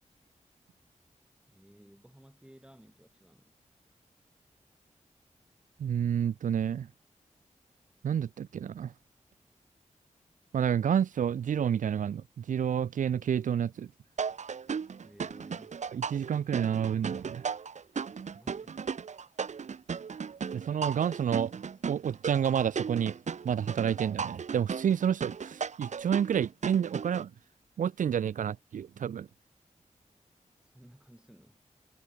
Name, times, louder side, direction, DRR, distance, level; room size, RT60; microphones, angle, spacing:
voice 1, 1.5-3.5 15.0-15.8 18.3-19.0 30.6-31.6, right 1 dB, 5° right, 5.9 m, -56 dB
voice 2, 5.8-6.9 8.0-8.9 10.5-13.9 15.9-17.5 20.5-21.5 21.9-23.2 23.4-27.3 27.8-29.3, right 8 dB, 80° right, 0.4 m, -29 dB
sound 1, 14.2-27.2, right 6 dB, 65° right, 1.1 m, -36 dB
wide cardioid pair, 130°, 13 cm